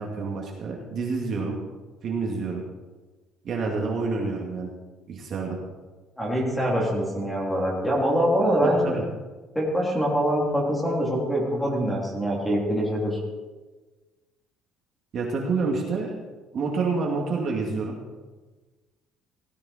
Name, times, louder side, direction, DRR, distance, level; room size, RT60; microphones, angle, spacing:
voice 1, 0.0-1.6 2.0-2.6 3.4-4.7 5.1-5.6 8.6-9.0 15.1-16.2 16.5-18.0, right 4 dB, 35° right, -1 dB, 2.4 m, -28 dB
voice 2, 6.2-9.0 9.5-13.2, equal, 5° left, -3 dB, 3.3 m, -24 dB
17.5 x 13.5 x 4.4 m, 1.2 s
cardioid pair, 180°, 0 cm